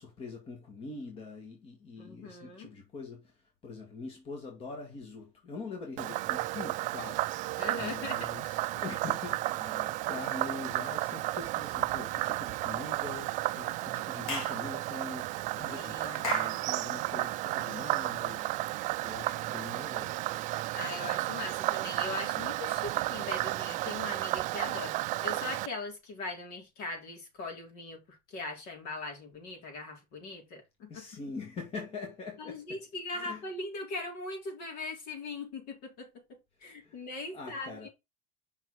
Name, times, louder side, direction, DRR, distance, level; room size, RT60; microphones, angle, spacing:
voice 1, 0.0-20.2 30.9-32.8 33.1-33.4 36.6-37.0 37.3-37.9, left 4 dB, 35° left, 2.1 m, -44 dB
voice 2, 2.0-2.7 7.5-8.3 9.9-10.0 15.7-16.6 20.7-31.2 32.4-37.9, left 3 dB, 60° left, 4.5 m, -40 dB
Frog, 6.0-25.7, right 18 dB, 45° right, 0.4 m, -33 dB
Clapping / Chirp tweet, 14.3-14.6 16.2-16.6, left 3 dB, 90° left, 3.6 m, -34 dB
6.0 x 5.9 x 4.8 m
supercardioid pair, 120°, 18 cm